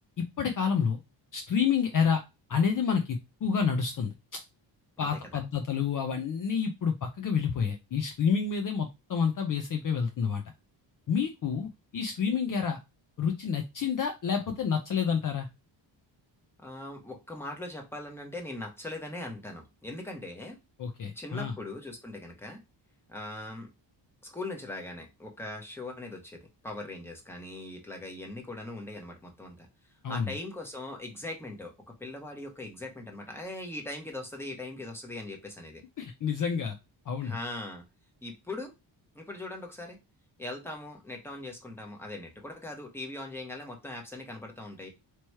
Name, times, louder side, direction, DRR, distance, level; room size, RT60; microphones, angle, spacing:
voice 1, 0.2-1.0 1.3-2.2 2.5-4.4 5.0-10.4 11.1-12.8 13.2-15.5 20.8-21.5 30.0-30.3 36.0-36.8 37.1-37.4, left 6 dB, 45° left, 5 dB, 0.5 m, -29 dB
voice 2, 5.0-5.4 16.6-20.6 21.1-22.6 23.1-23.7 24.2-29.7 30.1-35.8 37.2-37.8 38.2-38.7 39.1-40.0 40.4-44.9, left 2 dB, 5° left, 2 dB, 1.0 m, -40 dB
3.0 x 3.0 x 4.4 m, 0.24 s
wide cardioid pair, 145°, 46 cm